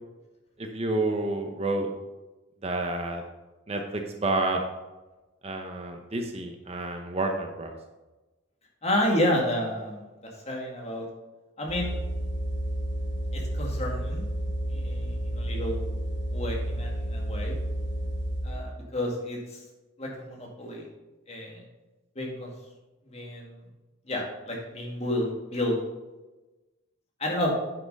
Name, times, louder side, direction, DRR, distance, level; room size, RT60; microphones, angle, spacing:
voice 1, 0.6-1.9 2.6-3.2 3.7-4.6 5.4-7.7, right 2 dB, 30° right, 3 dB, 0.8 m, -29 dB
voice 2, 8.8-10.0 10.5-11.1 11.6-11.9 13.3-14.3 14.7-15.8 16.3-17.6 18.4-19.6 20.0-20.9 21.3-21.6 22.2-22.5 23.1-23.6 24.1-25.8 27.2-27.5, left 1 dB, 30° left, -1 dB, 2.1 m, -30 dB
sound 1, 11.7-18.6, right 1 dB, 60° left, 1.2 m, -31 dB
9.6 x 6.0 x 5.4 m, 1.1 s
head